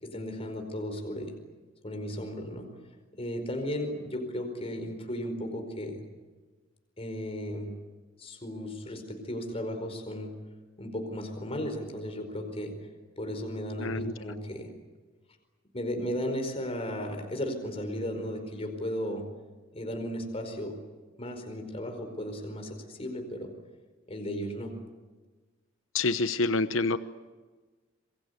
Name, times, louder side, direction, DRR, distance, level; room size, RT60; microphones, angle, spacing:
voice 1, 0.0-1.4 1.8-2.7 3.2-6.0 7.0-7.7 8.2-10.3 10.8-12.7 13.2-14.7 15.7-19.3 19.7-20.8 21.2-23.5 24.1-24.8, equal, 30° left, 5 dB, 4.8 m, -35 dB
voice 2, 13.8-14.1 25.9-27.0, left 3 dB, 75° left, 12 dB, 0.9 m, -27 dB
28.0 x 22.0 x 8.2 m, 1.3 s
head